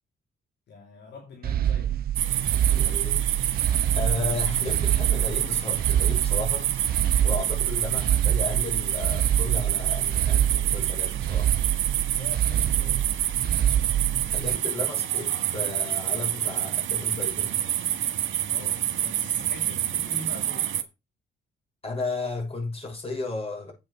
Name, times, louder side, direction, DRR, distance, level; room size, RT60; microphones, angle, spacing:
voice 1, 0.7-2.0 7.8-8.0 12.1-13.1 18.5-20.7, left 2 dB, 60° left, 2.7 m, -44 dB
sound 1, 1.4-14.6, right 10 dB, 50° right, 0.4 m, -26 dB
sound 2, 2.1-20.8, right 11 dB, 75° right, 1.8 m, -27 dB
voice 2, 2.4-6.7 7.2-11.5 14.3-17.6 21.8-23.7, left 3 dB, 30° left, 6.9 m, -34 dB
8.6 x 6.7 x 6.4 m
cardioid pair, 90°, 20 cm